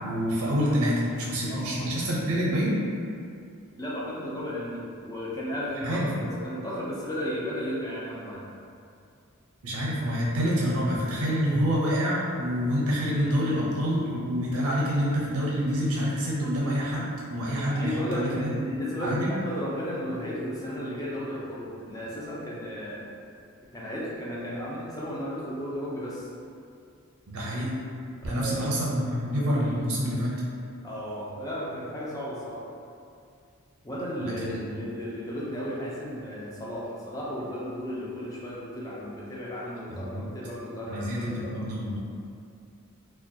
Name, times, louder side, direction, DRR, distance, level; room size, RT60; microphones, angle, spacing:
voice 1, 0.0-2.8 5.8-6.3 9.6-19.3 27.3-27.7 28.2-30.4 34.2-34.8 39.9-40.3 40.9-42.0, equal, 90° right, -5 dB, 0.6 m, -27 dB
voice 2, 3.8-8.4 17.7-23.0 23.7-26.3 28.2-28.7 30.8-32.7 33.8-41.7, equal, 15° left, -6 dB, 0.3 m, -34 dB
2.3 x 2.2 x 2.6 m, 2.3 s
head